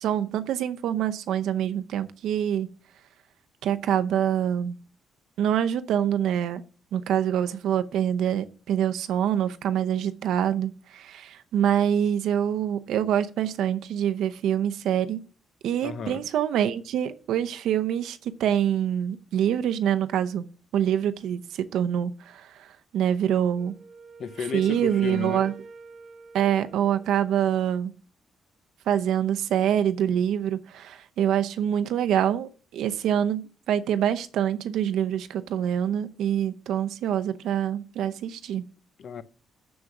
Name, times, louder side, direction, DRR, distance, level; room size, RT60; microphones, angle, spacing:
voice 1, 0.0-2.7 3.6-4.8 5.4-6.6 6.9-15.2 15.6-20.4 20.7-22.7 22.9-23.7 24.5-25.5 26.3-27.9 28.9-38.6, right 9 dB, 80° right, 0.7 m, -25 dB
voice 2, 15.8-16.2 24.2-25.5 39.0-39.2, left 6 dB, 45° left, 0.6 m, -33 dB
Wind instrument woodwind instrument, 23.5-27.4, right 5 dB, 40° right, 0.6 m, -47 dB
7.2 x 6.3 x 6.0 m
cardioid pair, 165°, 0 cm